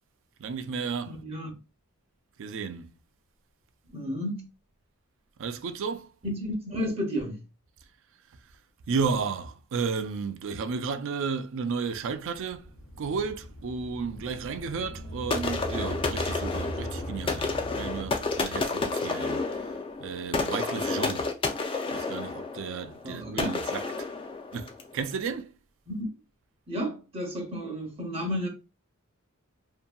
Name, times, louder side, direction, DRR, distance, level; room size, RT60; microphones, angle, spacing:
voice 1, 0.4-1.1 2.4-2.9 5.4-6.1 8.9-12.7 13.0-19.5 20.0-21.3 21.9-24.1 24.5-25.5, right 5 dB, 60° right, 0.4 m, -33 dB
voice 2, 1.1-1.5 3.9-4.5 6.2-7.4 23.0-23.6 25.9-26.2 26.7-28.5, equal, 30° right, 0.7 m, -32 dB
sound 1, 12.1-19.1, right 1 dB, 90° left, 0.5 m, -39 dB
sound 2, 15.3-24.9, left 3 dB, 25° left, 0.3 m, -31 dB
2.6 x 2.6 x 2.2 m
head